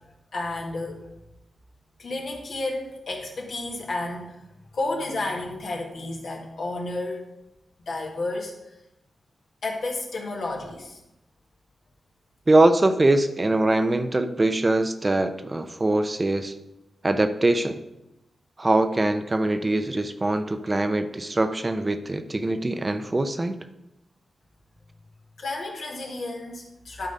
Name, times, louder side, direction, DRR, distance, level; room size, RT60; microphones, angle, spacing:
voice 1, 0.3-1.1 2.0-4.4 4.7-7.2 7.9-8.5 9.6-11.0 25.4-27.1, left 2 dB, 70° left, -1 dB, 1.9 m, -31 dB
voice 2, 12.5-16.5 17.0-17.8 18.6-23.6, right 2 dB, 35° right, 9 dB, 0.7 m, -22 dB
11.5 x 4.0 x 5.2 m, 0.93 s
supercardioid pair, 45°, 0 cm